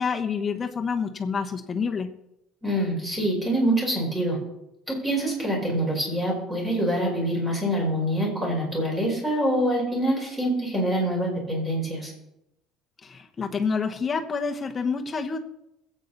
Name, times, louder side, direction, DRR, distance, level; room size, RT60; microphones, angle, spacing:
voice 1, 0.0-2.1 13.0-15.4, left 5 dB, 20° left, 4 dB, 1.2 m, -28 dB
voice 2, 2.6-4.4 4.9-12.1, right 1 dB, 10° right, -1 dB, 4.8 m, -25 dB
21.5 x 8.4 x 4.1 m, 0.87 s
cardioid pair, 160°, 0 cm